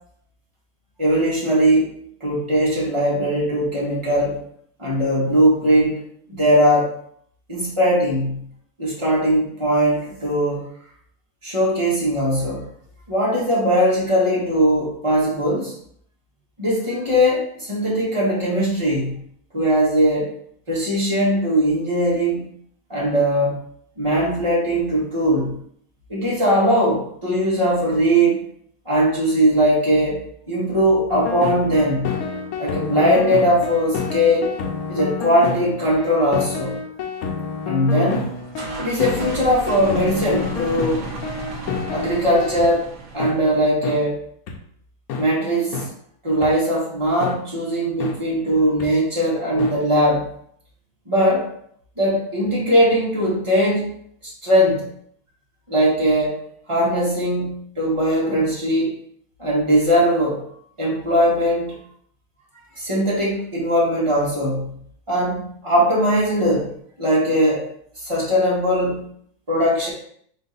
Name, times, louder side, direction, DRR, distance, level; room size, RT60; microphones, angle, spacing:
voice 1, 1.0-4.4 4.8-6.9 7.5-8.4 8.8-10.7 11.4-12.7 13.1-15.7 16.6-19.2 19.5-20.3 20.7-22.5 22.9-23.6 24.0-25.6 26.1-28.5 28.8-30.2 30.5-32.1 32.6-34.5 34.9-36.8 37.7-38.3 38.8-41.1 41.9-42.9 43.1-44.2 45.2-45.8 46.2-50.3 51.0-51.5 52.0-53.9 54.4-54.9 55.7-56.4 56.7-58.9 59.4-60.4 60.8-61.7 62.8-64.7 65.1-66.7 67.0-67.7 68.0-69.1 69.5-69.9, equal, 20° right, -6 dB, 1.6 m, -20 dB
sound 1, 31.1-42.7 43.2-43.3 43.8-44.0 44.5-44.6 45.1-45.2 45.7-45.9 46.4-46.5 47.2-47.3 48.0-48.1 48.8-48.9 49.6-49.7, left 5 dB, 80° left, 1.2 m, -29 dB
sound 2, 38.1-43.6, right 3 dB, 60° right, 1.0 m, -34 dB
3.8 x 3.4 x 4.0 m, 0.66 s
omnidirectional pair, 1.6 m